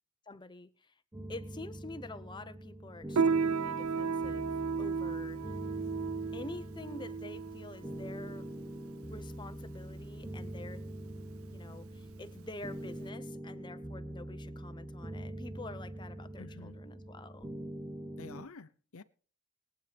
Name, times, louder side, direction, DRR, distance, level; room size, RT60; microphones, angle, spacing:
voice 1, 0.3-1.0 1.3-4.5 4.8-5.5 6.3-8.5 9.1-10.8 11.2-17.5, left 2 dB, 20° left, 0.8 m, -47 dB
sound 1, 1.1-18.5, right 1 dB, 10° right, 0.7 m, -44 dB
Piano, 3.1-13.1, right 5 dB, 70° right, 0.5 m, -35 dB
voice 2, 16.4-16.8 18.2-19.0, left 4 dB, 75° left, 0.7 m, -49 dB
21.5 x 8.9 x 3.5 m
head